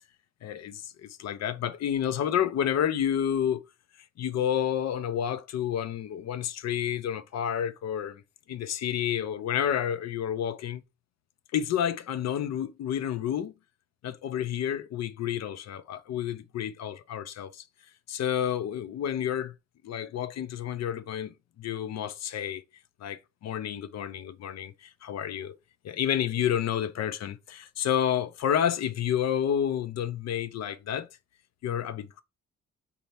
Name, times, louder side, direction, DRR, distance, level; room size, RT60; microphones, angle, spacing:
voice 1, 0.4-3.6 4.2-8.2 8.5-10.8 11.5-13.5 14.0-17.6 18.1-19.5 19.8-22.6 23.0-25.5 25.8-31.1 31.6-32.1, left 9 dB, 60° left, 0.6 m, -30 dB
4.3 x 2.8 x 3.2 m
cardioid pair, 90°, 30 cm